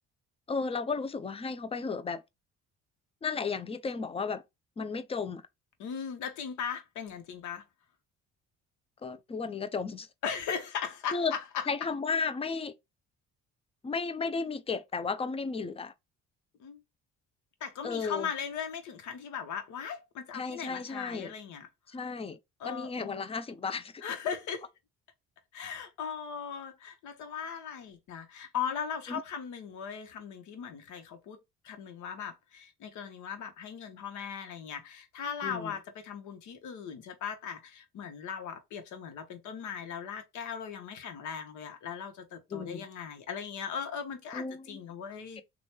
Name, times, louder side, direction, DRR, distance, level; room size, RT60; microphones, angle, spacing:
voice 1, 0.5-2.2 3.2-4.4 4.8-5.4 9.0-10.1 11.1-11.3 11.7-12.7 13.8-15.9 17.8-18.3 20.3-21.3 21.9-22.4 22.6-24.0 29.1-29.2 35.4-35.7 42.5-42.9 44.3-44.8 45.4-45.5, left 4 dB, 20° left, 0.5 m, -34 dB
voice 2, 5.8-7.6 10.2-11.7 16.6-16.8 17.6-22.0 22.6-23.2 24.0-24.7 25.5-31.4 31.6-45.4, left 7 dB, 70° left, 1.0 m, -38 dB
3.1 x 2.3 x 4.3 m
supercardioid pair, 85°, 31 cm